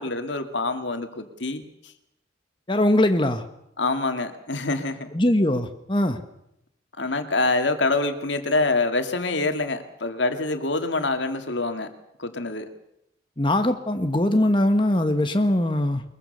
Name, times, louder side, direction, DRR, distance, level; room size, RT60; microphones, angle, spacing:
voice 1, 0.0-1.6 3.8-5.1 7.0-11.9 12.2-12.7, left 3 dB, 85° left, 7 dB, 2.2 m, -25 dB
voice 2, 2.7-3.4 5.1-6.2 13.4-16.0, left 1 dB, 25° left, 7 dB, 1.4 m, -21 dB
22.5 x 22.5 x 6.7 m, 0.79 s
head